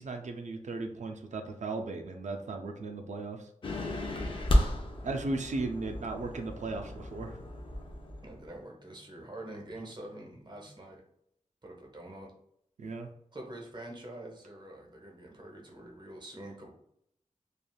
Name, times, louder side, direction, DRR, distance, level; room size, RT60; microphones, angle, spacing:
voice 1, 0.0-3.5 5.0-7.4 12.8-13.1, right 3 dB, 65° right, 4 dB, 0.4 m, -36 dB
sound 1, 3.6-8.5, left 1 dB, 40° left, 0.5 m, -32 dB
sound 2, 5.5-10.7, equal, 80° left, 1.1 m, -60 dB
voice 2, 8.2-11.0 11.6-12.3 13.3-16.7, right 1 dB, 35° right, 0 dB, 0.7 m, -45 dB
3.2 x 2.4 x 2.2 m, 0.73 s
wide cardioid pair, 105°, 13 cm